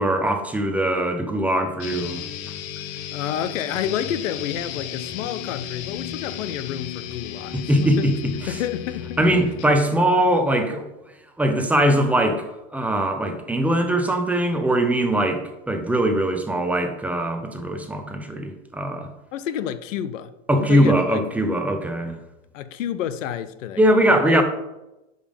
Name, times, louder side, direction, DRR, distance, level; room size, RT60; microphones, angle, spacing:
voice 1, 0.0-2.3 7.5-8.1 8.5-8.6 9.2-10.9 11.4-19.1 20.5-22.2 23.8-24.4, right 1 dB, 5° right, 0.5 m, -21 dB
sound 1, 1.8-9.8, left 9 dB, 40° left, 0.6 m, -34 dB
voice 2, 3.1-8.1 8.5-9.5 10.2-10.3 19.3-20.3 20.6-21.2 21.9-22.2 22.5-23.8 24.3-24.4, left 10 dB, 80° left, 0.7 m, -29 dB
5.3 x 4.9 x 5.2 m
supercardioid pair, 130°, 38 cm